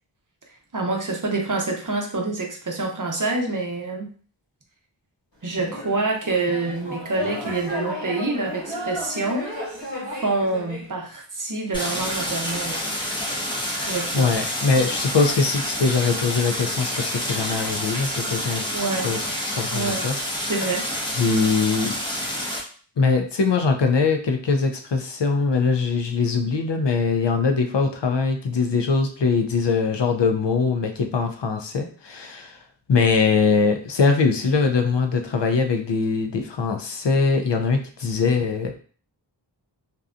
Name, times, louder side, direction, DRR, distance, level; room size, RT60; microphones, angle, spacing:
voice 1, 0.7-4.1 5.4-9.4 10.1-12.8 13.9-14.3 18.7-19.1 19.7-20.0 20.3-20.9, right 3 dB, 45° right, 1 dB, 0.6 m, -26 dB
sound 1, 5.6-10.9, left 1 dB, 90° left, 1.4 m, -33 dB
Stream, 11.7-22.6, equal, 10° left, 0.6 m, -28 dB
voice 2, 14.1-18.6 19.0-19.2 19.6-20.2 20.4-20.5 21.1-21.9 23.0-32.6 32.9-38.7, left 4 dB, 70° left, 5 dB, 0.5 m, -22 dB
2.7 x 2.2 x 2.4 m, 0.42 s
wide cardioid pair, 40°, 45 cm